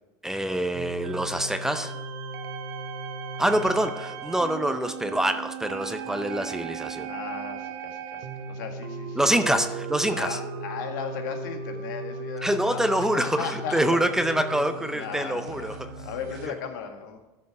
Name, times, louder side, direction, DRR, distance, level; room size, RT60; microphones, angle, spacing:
voice 1, 0.2-1.9 3.4-7.1 9.2-10.4 12.4-15.9, right 1 dB, 5° right, 9 dB, 0.5 m, -26 dB
sound 1, 0.7-16.5, right 4 dB, 60° right, 1.0 m, -37 dB
voice 2, 7.1-9.2 10.1-14.0 14.9-17.2, left 6 dB, 85° left, 4 dB, 1.7 m, -36 dB
13.5 x 6.4 x 4.8 m, 1.0 s
cardioid pair, 150°, 10 cm